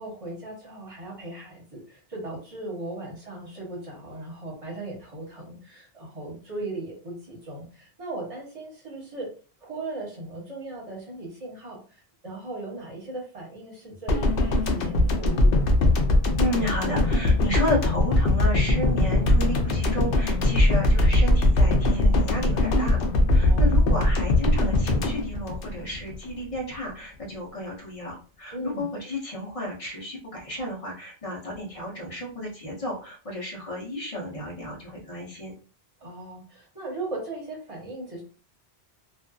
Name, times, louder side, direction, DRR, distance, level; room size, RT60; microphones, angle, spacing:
voice 1, 0.0-9.3 9.6-11.8 12.2-15.7 23.3-23.8 28.5-28.9 36.0-38.2, right 2 dB, 35° right, -3 dB, 1.1 m, -37 dB
sound 1, 14.1-26.3 26.5-26.7, left 1 dB, 65° left, 0.7 m, -21 dB
voice 2, 16.4-35.5, left 1 dB, 35° left, -3 dB, 0.9 m, -32 dB
2.5 x 2.4 x 2.3 m, 0.39 s
omnidirectional pair, 1.1 m